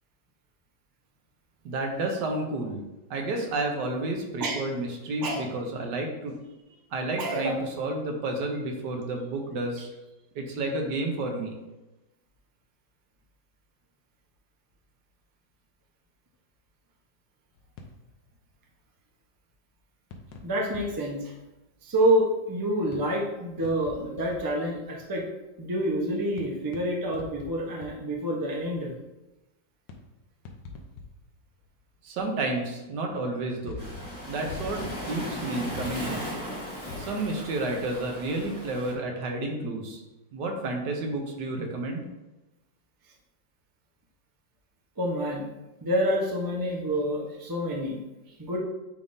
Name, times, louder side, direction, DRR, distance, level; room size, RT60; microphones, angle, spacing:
voice 1, 1.6-2.8 3.1-6.4 6.9-9.9 10.4-11.6 32.0-33.9 34.3-36.2 37.0-40.0 40.3-42.1, right 2 dB, 75° right, 2 dB, 1.5 m, -31 dB
voice 2, 7.2-7.5 20.4-21.3 21.8-25.3 25.6-28.9 45.0-45.5 45.8-48.0 48.4-48.6, right 1 dB, 20° right, -1 dB, 0.5 m, -27 dB
sound 1, 17.6-18.3 20.1-21.1 21.4-21.5 22.9-24.5 25.0-25.1 26.4-28.1 28.4-28.5 29.9-30.1 30.5-31.4 31.6-31.7 33.6-37.1, left 4 dB, 80° left, 1.5 m, -43 dB
Waves surf, 33.8-38.9, equal, 10° left, 1.0 m, -37 dB
9.8 x 3.5 x 2.7 m, 1.0 s
omnidirectional pair, 1.9 m